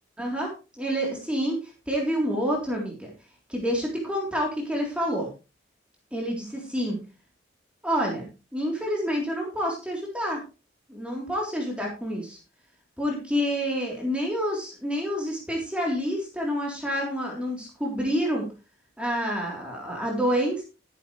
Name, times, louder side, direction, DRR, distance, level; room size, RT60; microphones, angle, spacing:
voice 1, 0.2-1.6 1.9-3.1 3.5-5.3 6.1-7.0 7.8-8.2 8.5-10.4 10.9-12.4 13.0-18.4 19.0-20.6, equal, 5° right, -2 dB, 3.5 m, -28 dB
13.5 x 10.5 x 3.3 m, 0.30 s
head